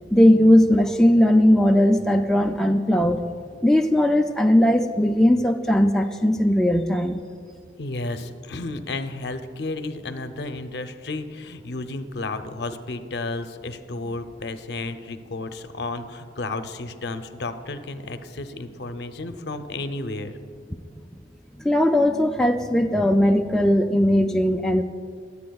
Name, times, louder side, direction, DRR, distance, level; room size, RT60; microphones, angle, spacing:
voice 1, 0.1-3.2 3.6-7.2 21.6-24.8, left 1 dB, 5° left, 3 dB, 0.3 m, -18 dB
voice 2, 7.8-20.4, left 2 dB, 65° left, 9 dB, 0.6 m, -32 dB
21.5 x 8.4 x 2.3 m, 2.3 s
head